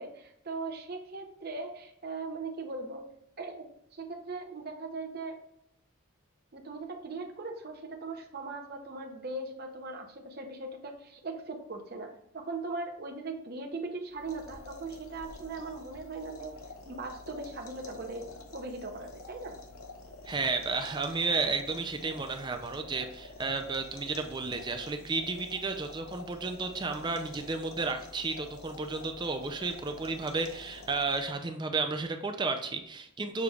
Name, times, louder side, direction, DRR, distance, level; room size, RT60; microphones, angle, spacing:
voice 1, 0.0-3.1 3.4-5.4 6.5-16.5 16.9-18.3 18.5-19.6, right 3 dB, 45° right, 3 dB, 0.8 m, -39 dB
sound 1, 14.1-31.5, left 3 dB, 80° left, 0.9 m, -48 dB
voice 2, 20.2-33.4, right 3 dB, 20° right, 6 dB, 0.4 m, -32 dB
6.7 x 3.1 x 2.3 m, 0.76 s
head